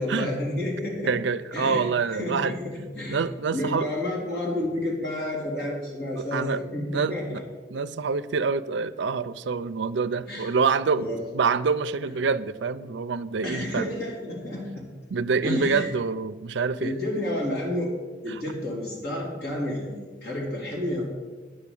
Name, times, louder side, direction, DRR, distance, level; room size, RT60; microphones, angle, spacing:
voice 1, 0.0-1.1 1.5-3.2 3.5-7.4 10.3-10.6 10.9-11.2 13.4-14.9 15.4-15.9 16.8-17.9 18.2-21.0, left 1 dB, 55° left, -3 dB, 3.4 m, -30 dB
voice 2, 1.1-2.5 3.1-3.9 6.2-6.6 6.9-7.4 7.7-11.1 11.3-13.9 15.1-16.9 18.3-18.4, right 5 dB, 70° right, 13 dB, 0.5 m, -26 dB
9.9 x 6.0 x 8.5 m, 1.3 s
head